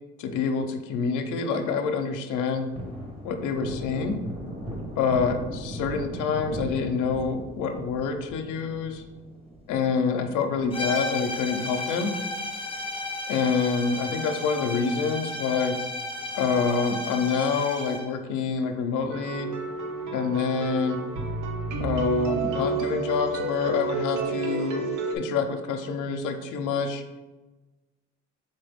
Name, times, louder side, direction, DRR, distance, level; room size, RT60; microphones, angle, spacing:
voice 1, 0.2-2.7 3.2-4.2 5.0-9.0 9.7-12.2 13.3-15.8 16.3-19.5 20.1-21.0 21.8-27.0, left 5 dB, 85° left, 6 dB, 0.5 m, -27 dB
Thunder, 2.4-13.1 13.4-13.5 13.9-15.4 15.7-15.8 16.2-17.0 17.4-17.5 17.8-17.9 20.3-20.8, equal, 20° right, 1.0 m, -40 dB
sound 1, 10.7-18.1, left 2 dB, 20° left, 0.6 m, -33 dB
sound 2, 19.1-25.2, right 3 dB, 75° right, 0.7 m, -30 dB
4.2 x 3.4 x 3.5 m, 1.2 s
cardioid pair, 90°, 30 cm